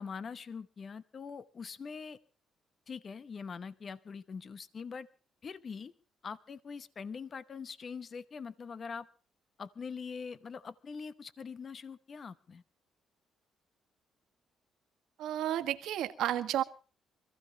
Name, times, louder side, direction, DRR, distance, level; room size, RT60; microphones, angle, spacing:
voice 1, 0.0-2.2 2.9-5.1 5.4-5.9 6.2-9.1 9.6-12.6, left 5 dB, 45° left, 15 dB, 1.0 m, -43 dB
voice 2, 15.2-16.6, right 12 dB, 80° right, 8 dB, 1.6 m, -32 dB
25.5 x 15.5 x 3.0 m, 0.37 s
cardioid pair, 90°, 0 cm